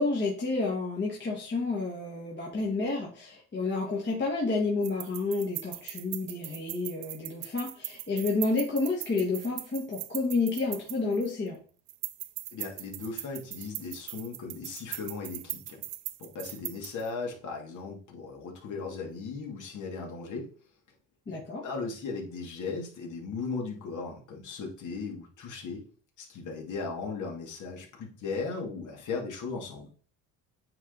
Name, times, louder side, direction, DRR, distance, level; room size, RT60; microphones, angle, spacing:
voice 1, 0.0-11.6 21.3-21.6, left 3 dB, 30° left, -3 dB, 1.8 m, -30 dB
sound 1, 4.8-11.5 11.9-17.1, right 17 dB, 80° right, 0.6 m, -40 dB
voice 2, 12.5-15.8 16.2-20.5 21.3-25.9 26.2-29.9, left 4 dB, 50° left, 0 dB, 2.5 m, -37 dB
9.0 x 3.5 x 4.0 m, 0.41 s
cardioid pair, 125°, 37 cm